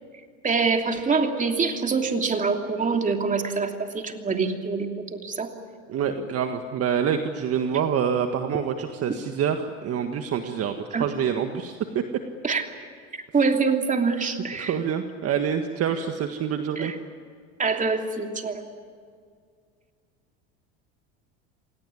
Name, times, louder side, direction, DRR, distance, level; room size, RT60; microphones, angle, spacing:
voice 1, 0.4-5.5 10.9-11.1 12.4-12.6 13.1-14.7 16.8-17.0 17.6-18.7, right 4 dB, 20° right, 4 dB, 2.9 m, -25 dB
voice 2, 5.9-12.0 14.6-16.9, right 8 dB, 45° right, 6 dB, 1.7 m, -26 dB
27.0 x 18.5 x 9.9 m, 2.1 s
supercardioid pair, 105°, 35 cm